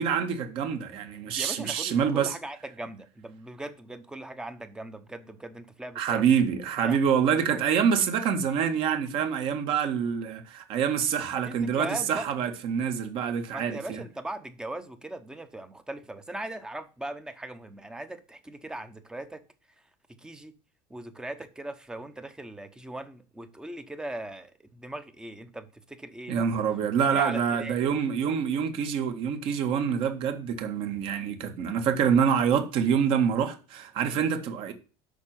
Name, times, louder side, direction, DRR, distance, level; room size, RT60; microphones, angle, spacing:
voice 1, 0.0-2.3 6.0-14.0 26.3-34.7, right 7 dB, 50° right, 1.9 m, -26 dB
voice 2, 1.4-6.2 6.8-7.0 7.5-7.6 11.3-12.3 13.5-19.4 20.2-20.5 20.9-26.7 27.1-28.0, right 1 dB, 5° right, 0.9 m, -39 dB
8.2 x 6.2 x 7.4 m
cardioid pair, 165°, 12 cm